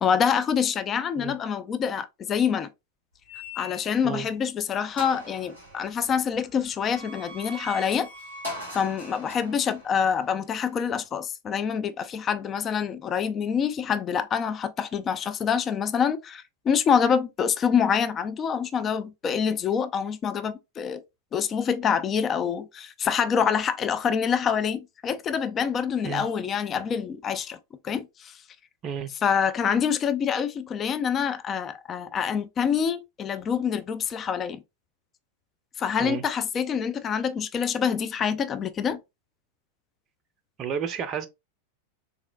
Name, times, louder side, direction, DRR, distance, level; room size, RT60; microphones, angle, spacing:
voice 1, 0.0-2.7 3.6-8.1 8.7-21.0 21.3-27.6 27.8-28.4 29.2-34.6 35.8-39.0, left 7 dB, 25° left, 0.3 m, -26 dB
sound 1, 3.3-4.2 4.6-4.7 5.0-11.1, left 1 dB, 85° left, 1.8 m, -42 dB
voice 2, 40.6-41.3, right 7 dB, 30° right, 0.5 m, -31 dB
3.7 x 3.0 x 2.2 m
figure-of-eight pair, 90°, 0 cm